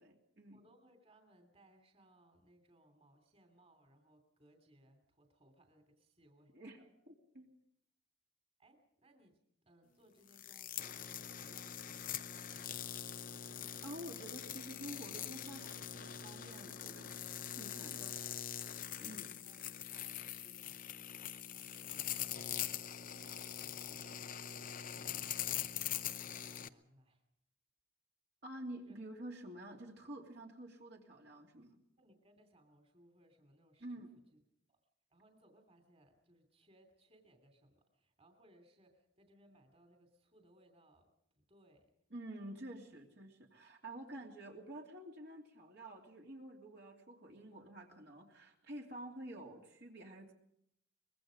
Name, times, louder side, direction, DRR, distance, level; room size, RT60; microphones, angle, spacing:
voice 1, 0.0-0.6 6.5-7.5 13.8-18.2 19.0-19.3 28.4-31.8 33.8-34.1 42.1-50.3, right 1 dB, 55° right, 0 dB, 2.9 m, -49 dB
voice 2, 0.5-6.5 8.6-9.4 9.7-13.0 18.3-18.5 19.0-27.3 28.9-29.0 32.0-34.0 34.3-34.4 34.7-34.8 35.1-41.9, right 1 dB, 30° right, 5 dB, 2.8 m, -67 dB
sound 1, 10.3-26.7, left 10 dB, 45° left, 0.7 m, -43 dB
24.0 x 21.5 x 5.1 m, 0.73 s
head